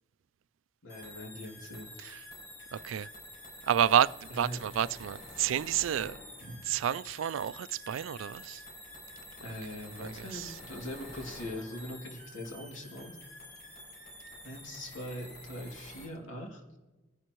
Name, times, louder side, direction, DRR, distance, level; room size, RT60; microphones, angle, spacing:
voice 1, 0.8-1.9 4.3-4.6 6.4-6.6 9.4-13.2 14.4-16.6, left 1 dB, 80° left, 2.7 m, -41 dB
sound 1, 0.9-16.1, left 1 dB, 50° left, 5.6 m, -48 dB
voice 2, 2.7-3.1 3.7-6.2 6.7-8.6 10.0-10.5, right 9 dB, 85° right, 0.3 m, -30 dB
25.0 x 11.0 x 3.1 m
head